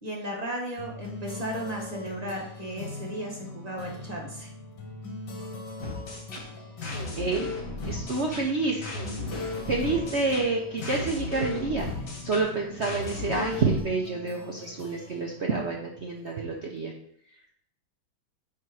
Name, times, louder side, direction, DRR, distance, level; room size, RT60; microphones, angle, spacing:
voice 1, 0.0-4.5, equal, 20° right, -1 dB, 1.4 m, -35 dB
sound 1, 0.8-16.7, left 2 dB, 65° left, 1.9 m, -42 dB
sound 2, 5.8-13.8, left 2 dB, 45° left, 1.8 m, -36 dB
voice 2, 7.2-7.5 7.9-8.9 9.7-11.9 12.2-16.9, right 3 dB, 60° right, 0 dB, 0.7 m, -28 dB
9.3 x 3.6 x 4.7 m, 0.71 s
omnidirectional pair, 2.1 m